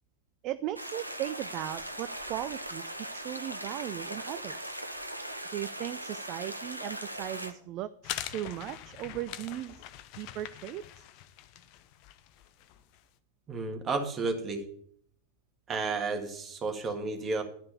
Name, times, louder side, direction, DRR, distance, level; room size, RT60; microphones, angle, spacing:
voice 1, 0.4-4.8 5.5-9.8 10.2-10.8, right 13 dB, 40° right, 15 dB, 0.4 m, -37 dB
sound 1, 0.8-7.5, right 1 dB, 85° right, 0.9 m, -39 dB
sound 2, 8.0-13.0, left 13 dB, 45° left, 0.7 m, -43 dB
voice 2, 13.5-14.6 15.7-17.4, right 3 dB, 25° right, 4 dB, 1.8 m, -32 dB
12.0 x 5.4 x 7.1 m, 0.65 s
figure-of-eight pair, 90°, 0 cm